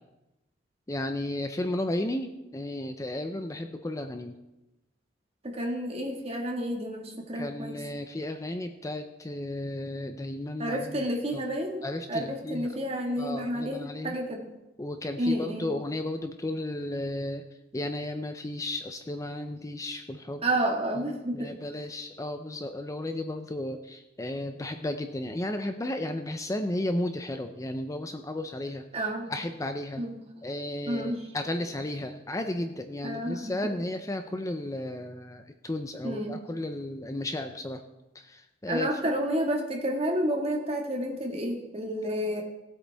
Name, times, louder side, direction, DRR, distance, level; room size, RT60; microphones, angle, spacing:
voice 1, 0.9-4.3 7.3-11.1 11.3-11.5 11.8-12.7 13.2-14.1 14.8-17.5 17.7-20.4 21.0-21.1 21.3-30.0 30.4-37.8 38.1-39.0, left 1 dB, 20° left, 7 dB, 0.5 m, -34 dB
voice 2, 5.4-7.8 10.6-14.4 15.2-15.7 20.4-21.5 28.9-29.3 30.0-30.2 30.9-31.2 33.0-33.5 36.0-36.4 38.7-42.4, right 1 dB, 35° right, 1 dB, 1.8 m, -30 dB
18.0 x 8.3 x 3.5 m, 0.97 s
head